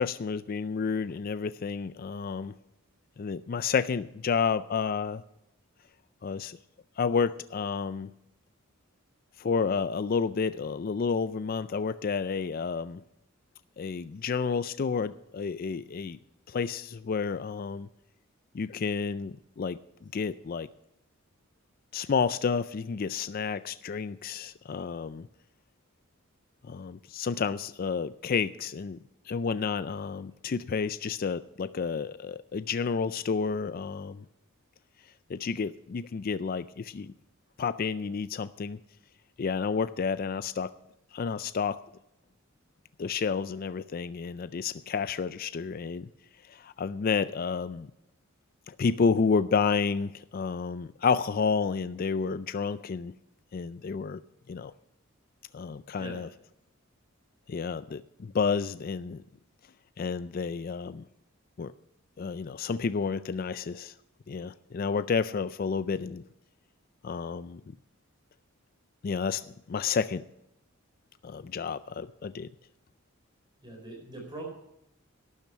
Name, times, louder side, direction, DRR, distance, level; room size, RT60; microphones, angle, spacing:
voice 1, 0.0-2.5 3.2-5.2 6.2-6.6 7.0-8.1 9.4-13.0 13.8-16.2 16.5-17.9 18.5-19.8 20.1-20.7 21.9-25.3 26.6-29.0 29.3-34.2 35.3-37.1 37.6-38.8 39.4-40.7 41.1-41.8 43.0-46.1 46.5-47.9 48.7-53.1 53.5-54.2 54.5-54.7 55.5-56.3 57.5-59.2 60.0-61.1 61.6-61.7 62.2-63.9 64.3-66.2 67.0-67.6 69.0-70.2 71.2-72.5, left 5 dB, 45° left, 14 dB, 0.4 m, -30 dB
voice 2, 73.6-74.4, right 2 dB, 20° right, 0 dB, 4.2 m, -42 dB
12.0 x 10.5 x 5.6 m, 0.84 s
head